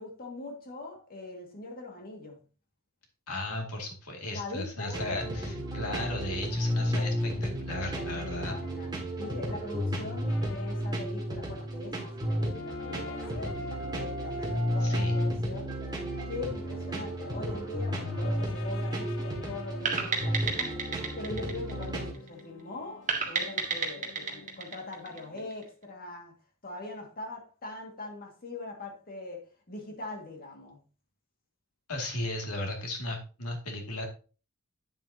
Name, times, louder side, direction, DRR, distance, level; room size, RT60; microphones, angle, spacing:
voice 1, 0.0-2.4 4.3-5.0 8.0-8.9 9.2-15.7 16.3-20.8 21.2-26.4 26.6-30.8, left 2 dB, 40° left, 2.0 m, -42 dB
voice 2, 3.3-8.6 14.8-15.2 31.9-34.1, left 1 dB, 80° left, 2.3 m, -35 dB
sound 1, 4.9-22.1, equal, 20° right, 2.0 m, -32 dB
sound 2, 10.3-11.1 11.4-11.5 11.8-15.4 16.2-25.5, left 1 dB, 60° left, 0.7 m, -45 dB
sound 3, 19.9-22.4 23.1-25.6, right 5 dB, 35° right, 1.6 m, -32 dB
9.2 x 7.4 x 2.8 m
head